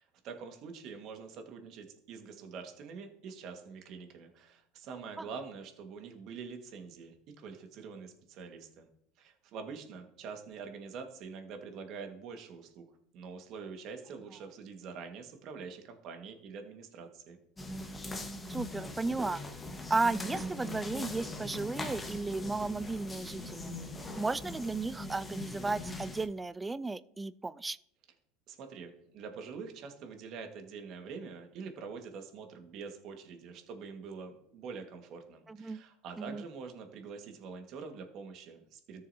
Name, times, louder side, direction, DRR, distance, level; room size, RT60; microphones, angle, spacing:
voice 1, 0.0-8.9 9.2-12.8 13.1-17.4 28.5-39.0, right 5 dB, 55° right, 5 dB, 1.7 m, -45 dB
sound 1, 17.6-26.3, left 2 dB, 15° left, 1.4 m, -41 dB
voice 2, 18.5-19.4 19.9-23.7 24.2-27.8 35.5-35.8 36.2-36.4, right 3 dB, 15° right, 18 dB, 0.3 m, -34 dB
13.5 x 6.6 x 2.8 m, 0.71 s
hypercardioid pair, 95°, 0 cm